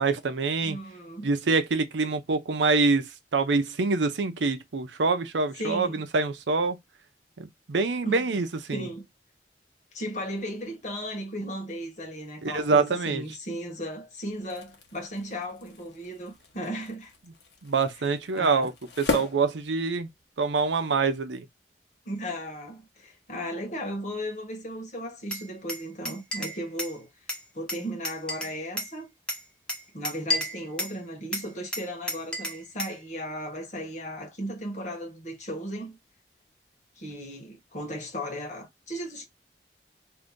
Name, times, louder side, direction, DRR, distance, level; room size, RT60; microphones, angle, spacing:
voice 1, 0.0-0.8 1.2-6.8 7.4-8.9 12.4-13.2 17.6-18.7 19.0-20.1 20.4-21.4, right 4 dB, 90° right, 0.6 m, -25 dB
voice 2, 0.6-1.3 5.6-6.1 8.0-8.2 8.7-9.1 9.9-17.1 18.3-18.7 22.0-27.1 27.5-29.1 29.9-36.0 37.0-39.3, equal, 40° left, 1.2 m, -36 dB
sound 1, 14.3-20.3, left 3 dB, 75° left, 1.0 m, -37 dB
Glass, 25.3-27.0 27.3-28.9 29.3-31.0 31.3-33.0, left 1 dB, 5° left, 0.8 m, -33 dB
2.7 x 2.6 x 3.5 m
head